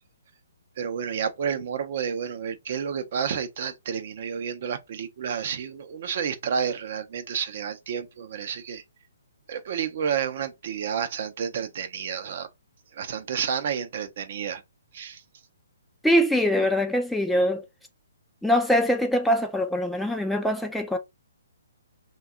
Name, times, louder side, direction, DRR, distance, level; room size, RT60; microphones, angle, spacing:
voice 1, 0.8-8.8 9.5-12.5 12.9-14.6 14.9-15.2, right 7 dB, 50° right, 0.6 m, -30 dB
voice 2, 16.0-17.6 18.4-21.0, equal, ahead, 0.3 m, -23 dB
2.7 x 2.2 x 3.6 m
hypercardioid pair, 145°, 0 cm